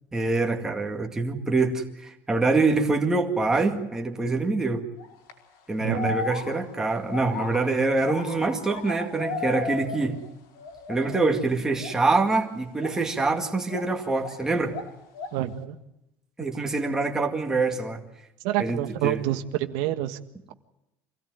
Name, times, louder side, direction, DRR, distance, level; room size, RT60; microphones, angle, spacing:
voice 1, 0.1-4.8 5.7-10.2 10.9-14.7 16.4-18.0 18.6-19.2, right 3 dB, 10° right, 3 dB, 2.1 m, -25 dB
sound 1, 5.0-5.3 5.9-10.3 10.6-11.3 11.8-12.0 12.8-14.4 14.7-15.5, left 5 dB, 70° left, 4.5 m, -35 dB
voice 2, 5.8-6.2 15.3-15.8 18.4-20.2, right 13 dB, 85° right, 8 dB, 1.6 m, -27 dB
25.5 x 17.0 x 9.4 m, 0.87 s
cardioid pair, 180°, 7 cm